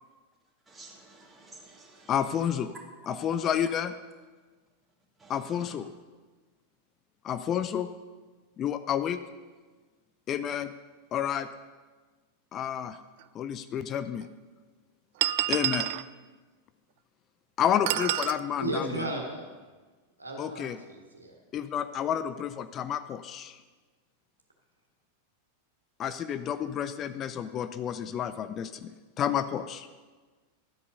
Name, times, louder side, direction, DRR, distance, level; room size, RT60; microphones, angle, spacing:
voice 1, 0.7-2.1 3.1-3.3 5.2-5.7, right 2 dB, 10° right, -1 dB, 2.3 m, -50 dB
voice 2, 2.1-2.7 3.1-3.9 5.3-5.9 7.2-7.9 8.6-9.2 10.3-10.7 11.1-11.5 12.5-13.0 13.3-14.3 15.5-15.9 17.6-19.1 20.4-20.8 21.5-23.6 26.0-28.9 29.2-29.9, left 9 dB, 30° left, 11 dB, 0.5 m, -30 dB
sound 1, 13.2-13.3 14.2-14.3 15.2-16.1 17.9-18.4, right 15 dB, 50° right, 0.3 m, -28 dB
voice 3, 18.6-19.5 20.2-21.3, right 2 dB, 85° right, 0 dB, 1.9 m, -35 dB
12.0 x 8.3 x 5.4 m, 1.3 s
figure-of-eight pair, 90°, 0 cm